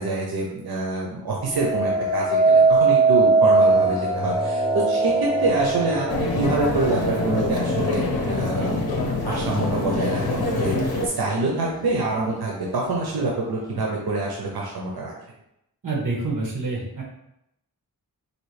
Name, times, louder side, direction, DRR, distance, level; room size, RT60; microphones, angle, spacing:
voice 1, 0.0-9.0 9.2-15.1, right 3 dB, 90° right, -2 dB, 0.7 m, -26 dB
sound 1, 1.5-10.6 11.2-11.6, right 3 dB, 10° left, 0.4 m, -22 dB
sound 2, 6.1-11.1, left 2 dB, 80° left, 0.7 m, -25 dB
voice 2, 15.8-17.0, right 3 dB, 60° right, -2 dB, 1.2 m, -27 dB
4.4 x 2.7 x 3.2 m, 0.81 s
wide cardioid pair, 95°, 36 cm